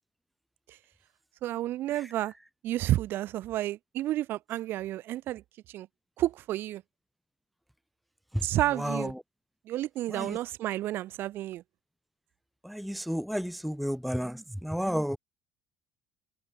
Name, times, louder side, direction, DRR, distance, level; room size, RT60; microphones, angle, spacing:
voice 1, 1.4-2.3 2.6-5.4 5.7-5.9 6.2-6.8 8.4-9.1 9.7-11.6, right 14 dB, 55° right, 2.2 m, -31 dB
voice 2, 8.8-9.1 10.1-10.4 12.6-15.2, equal, ahead, 0.4 m, -31 dB
cardioid pair, 130°, 4 cm